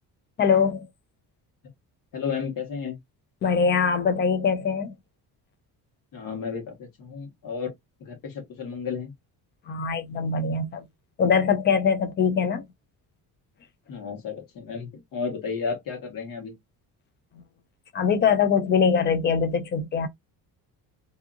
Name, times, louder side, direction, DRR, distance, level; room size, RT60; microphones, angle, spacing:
voice 1, 0.4-0.9 3.4-4.9 9.7-10.8 11.2-12.6 17.9-20.1, left 6 dB, 30° left, 0.3 m, -22 dB
voice 2, 2.1-3.0 6.1-7.7 8.0-9.1 13.9-16.6, left 5 dB, 55° left, 1.3 m, -33 dB
2.7 x 2.4 x 2.4 m
cardioid pair, 150°, 40 cm